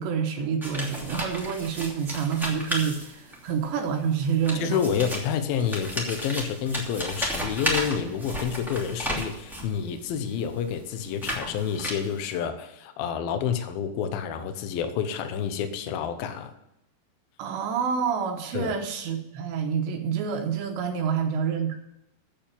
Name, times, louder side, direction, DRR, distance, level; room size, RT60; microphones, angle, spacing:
voice 1, 0.0-4.8 17.4-21.8, right 7 dB, 70° right, 4 dB, 3.0 m, -28 dB
sound 1, 0.6-3.5 4.2-9.8 10.4-12.3, equal, ahead, 0.5 m, -33 dB
voice 2, 4.6-16.5 18.5-18.7, left 7 dB, 80° left, 8 dB, 2.1 m, -29 dB
9.0 x 7.8 x 8.7 m, 0.83 s
omnidirectional pair, 5.6 m